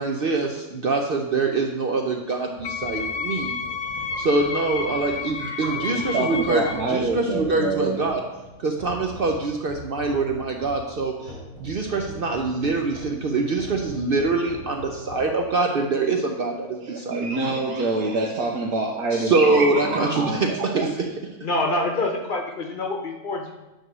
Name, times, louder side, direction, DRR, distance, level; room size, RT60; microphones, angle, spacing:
voice 1, 0.0-3.5 4.2-8.2 8.6-17.6 19.1-21.1, right 3 dB, 60° right, 2 dB, 0.6 m, -24 dB
sound 1, 2.5-15.3, left 1 dB, 30° right, 1.6 m, -42 dB
Wind instrument woodwind instrument, 2.6-6.9, left 5 dB, 70° left, 1.0 m, -31 dB
voice 2, 5.4-8.0 16.8-20.9, right 3 dB, 90° right, -2 dB, 1.3 m, -26 dB
voice 3, 21.4-23.5, left 2 dB, 40° left, 2 dB, 0.9 m, -26 dB
9.0 x 3.1 x 6.1 m, 1.0 s
omnidirectional pair, 1.6 m